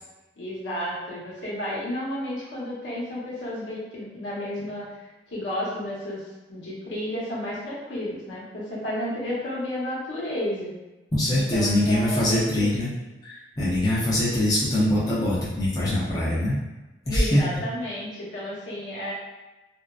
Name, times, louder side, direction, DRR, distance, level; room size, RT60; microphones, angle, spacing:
voice 1, 0.4-6.2 6.5-10.7 11.3-12.7 17.1-19.1, left 1 dB, 80° left, -7 dB, 0.9 m, -32 dB
voice 2, 11.1-12.9 13.2-16.6 17.1-17.4, left 1 dB, 20° left, -9 dB, 0.5 m, -23 dB
2.5 x 2.2 x 2.3 m, 1.1 s
head